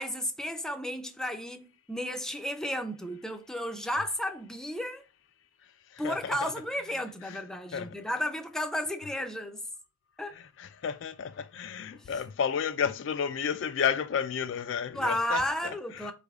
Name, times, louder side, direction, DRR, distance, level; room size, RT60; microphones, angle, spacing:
voice 1, 0.0-5.0 6.0-9.6 10.2-10.4 14.9-16.1, left 1 dB, 5° left, 0.5 m, -33 dB
voice 2, 5.9-6.5 7.2-7.4 7.7-8.0 10.3-16.1, left 7 dB, 65° left, 0.3 m, -32 dB
4.4 x 3.3 x 2.3 m
head